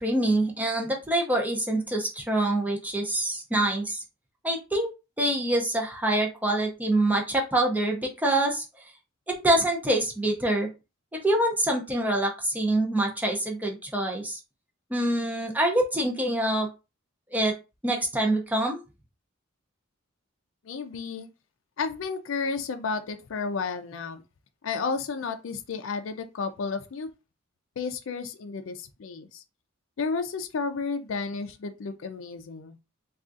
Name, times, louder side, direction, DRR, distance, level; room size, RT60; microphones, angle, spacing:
voice 1, 0.0-4.0 4.4-4.9 5.2-8.6 9.3-10.7 11.2-14.4 14.9-16.7 17.3-17.5 17.8-18.8, right 1 dB, 10° right, 0.6 m, -25 dB
voice 2, 20.6-21.3 21.8-24.2 24.6-27.1 27.8-29.4 30.0-32.8, left 4 dB, 65° left, 0.4 m, -32 dB
3.6 x 2.4 x 2.5 m
head